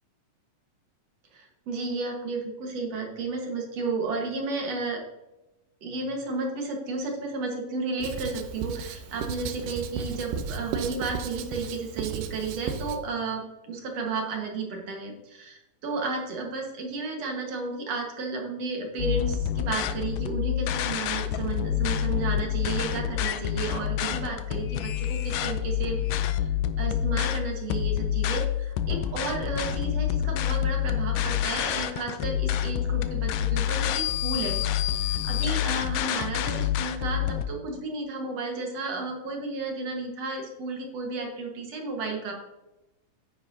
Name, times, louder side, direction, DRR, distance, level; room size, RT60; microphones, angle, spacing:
voice 1, 1.3-5.0 5.8-26.0 26.4-26.5 26.8-34.6 34.9-42.3, right 3 dB, 55° right, 1 dB, 2.2 m, -33 dB
Writing, 8.0-13.0, right 7 dB, 80° right, 2.2 m, -35 dB
sound 1, 19.0-37.5, left 11 dB, 80° left, 2.1 m, -27 dB
9.7 x 9.6 x 2.7 m, 0.98 s
omnidirectional pair, 4.1 m